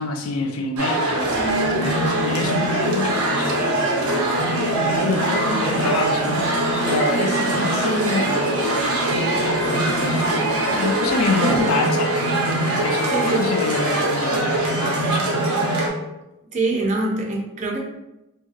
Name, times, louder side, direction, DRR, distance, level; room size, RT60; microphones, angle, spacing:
voice 1, 0.0-12.2 12.8-15.3, left 3 dB, 70° left, 0.4 m, -27 dB
sound 1, 0.8-15.9, right 1 dB, 80° right, 0.7 m, -22 dB
sound 2, 1.2-11.6, left 1 dB, 85° left, 1.0 m, -32 dB
sound 3, 8.7-13.9, right 1 dB, 20° left, 0.6 m, -35 dB
voice 2, 11.4-11.7 13.1-13.5 16.5-17.8, right 2 dB, 30° right, 0.4 m, -24 dB
2.7 x 2.7 x 2.4 m
head